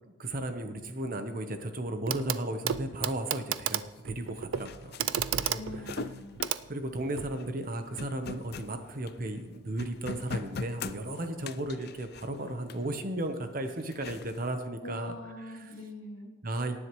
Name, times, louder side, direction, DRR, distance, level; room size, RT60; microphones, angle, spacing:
voice 1, 0.1-5.8 6.7-15.1 15.5-15.7 16.4-16.8, right 1 dB, 45° right, 7 dB, 1.0 m, -35 dB
Clock, 2.1-2.4 2.7-7.4 8.6-8.7, right 9 dB, 75° right, 0.4 m, -33 dB
sound 1, 4.0-4.1 4.2-9.5 9.8-13.0 13.6-14.5, left 5 dB, 50° left, 0.4 m, -42 dB
voice 2, 5.6-6.4 14.8-16.3, left 1 dB, 75° left, 2 dB, 2.0 m, -43 dB
18.0 x 10.0 x 3.1 m, 1.2 s
head